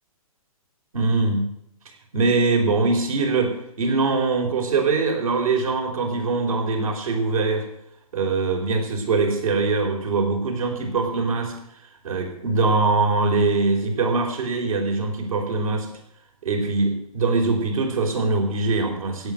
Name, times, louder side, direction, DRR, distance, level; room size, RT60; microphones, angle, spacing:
voice 1, 0.9-1.5 2.1-7.6 8.1-11.5 12.0-15.9 16.4-19.3, right 3 dB, 65° right, 3 dB, 4.6 m, -22 dB
16.5 x 7.9 x 8.0 m, 0.78 s
figure-of-eight pair, 130°, 19 cm